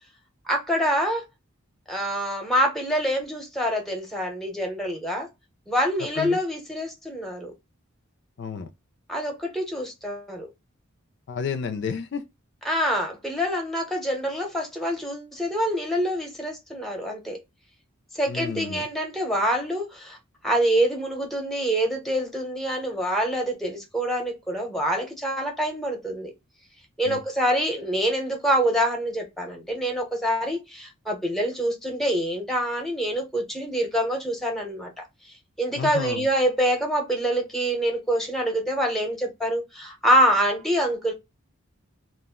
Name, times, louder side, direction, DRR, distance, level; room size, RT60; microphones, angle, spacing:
voice 1, 0.4-1.3 1.9-5.3 5.7-7.5 9.1-10.5 12.6-17.4 18.1-20.2 20.4-26.3 27.0-41.1, equal, ahead, 0.7 m, -26 dB
voice 2, 8.4-8.7 11.3-12.2 18.3-18.9 27.0-27.2 35.8-36.3, left 6 dB, 55° left, 0.3 m, -31 dB
2.4 x 2.1 x 3.5 m
head